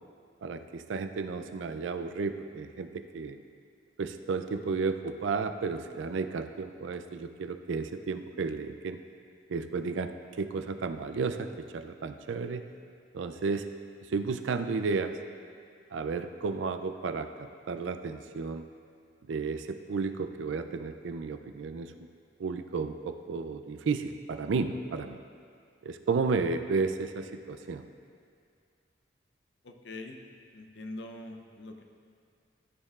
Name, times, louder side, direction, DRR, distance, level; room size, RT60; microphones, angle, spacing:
voice 1, 0.4-3.4 4.0-9.0 9.5-12.6 13.1-13.7 14.1-15.2 15.9-18.7 19.3-21.9 22.4-25.2 25.8-27.8, right 4 dB, 80° right, 9 dB, 0.4 m, -33 dB
voice 2, 29.6-30.2 30.5-31.8, left 2 dB, 65° left, 4 dB, 0.6 m, -43 dB
13.0 x 6.5 x 2.4 m, 2.3 s
head